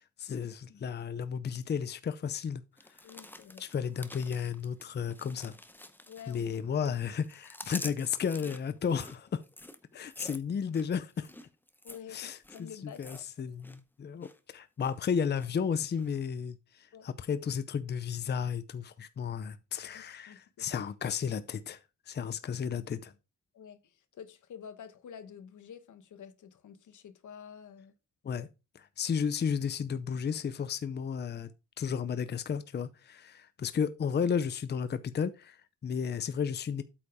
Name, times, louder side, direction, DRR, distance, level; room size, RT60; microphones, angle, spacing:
voice 1, 0.2-2.6 3.6-5.5 6.3-9.4 9.9-11.3 12.1-21.8 22.1-23.1 28.2-28.5 28.7-31.5 31.8-36.8, left 7 dB, 35° left, 0.6 m, -33 dB
sound 1, 2.8-6.6 6.8-13.8 14.0-14.4 14.8-15.5 16.0-16.1, left 1 dB, 5° left, 0.7 m, -47 dB
voice 2, 3.0-3.6 6.1-6.5 11.8-13.2 16.9-17.1 19.8-20.7 23.5-27.9, left 8 dB, 85° left, 1.1 m, -49 dB
8.5 x 5.0 x 4.8 m
wide cardioid pair, 130°, 29 cm